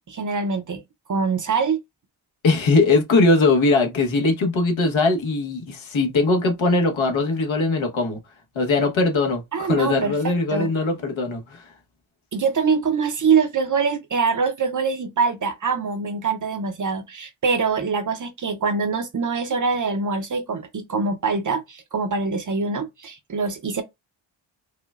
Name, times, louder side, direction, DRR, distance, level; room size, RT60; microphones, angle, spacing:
voice 1, 0.1-0.8 1.1-1.8 9.5-10.7 12.3-23.8, right 5 dB, 40° right, 0.6 m, -24 dB
voice 2, 2.4-8.2 8.5-11.6, left 3 dB, 70° left, 1.1 m, -20 dB
4.9 x 2.2 x 2.4 m
wide cardioid pair, 105°, 48 cm